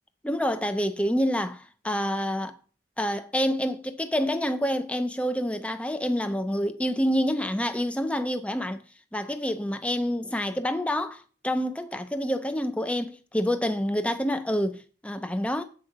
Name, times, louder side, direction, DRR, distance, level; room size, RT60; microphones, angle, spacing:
voice 1, 0.2-2.6 3.0-8.8 9.1-15.6, equal, 5° left, 0.6 m, -27 dB
7.9 x 4.7 x 6.6 m
head